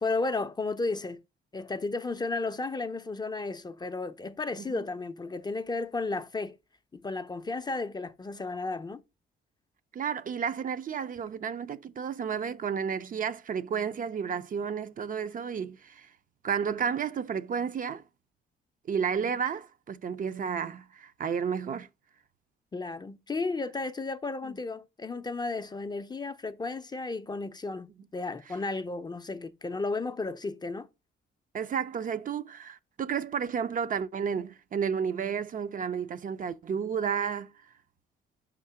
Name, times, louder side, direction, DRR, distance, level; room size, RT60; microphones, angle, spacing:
voice 1, 0.0-1.2 1.5-6.6 6.9-9.0 22.7-30.9, left 3 dB, 20° left, 0.4 m, -33 dB
voice 2, 9.9-16.1 16.4-18.0 18.9-21.9 31.5-37.5, right 7 dB, 45° right, 0.5 m, -32 dB
5.4 x 3.7 x 5.6 m
cardioid pair, 90°, 20 cm